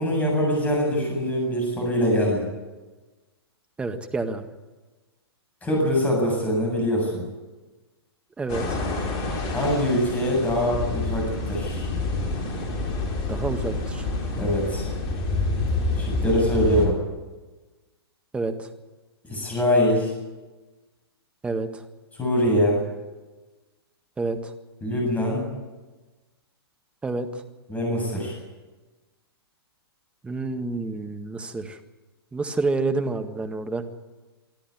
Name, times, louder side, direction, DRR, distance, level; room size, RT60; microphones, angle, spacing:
voice 1, 0.0-2.4 5.6-7.2 9.5-11.9 14.4-14.9 16.0-17.0 19.2-20.1 22.2-22.8 24.8-25.4 27.7-28.3, equal, 10° left, -1 dB, 7.9 m, -23 dB
voice 2, 3.8-4.5 8.4-8.8 13.3-14.1 18.3-18.7 21.4-21.8 24.2-24.5 27.0-27.4 30.2-31.8 32.3-33.9, right 3 dB, 10° right, 7 dB, 1.7 m, -28 dB
sound 1, 8.5-16.9, left 2 dB, 30° left, 4.9 m, -28 dB
24.5 x 13.0 x 9.8 m, 1.2 s
figure-of-eight pair, 115°, 13 cm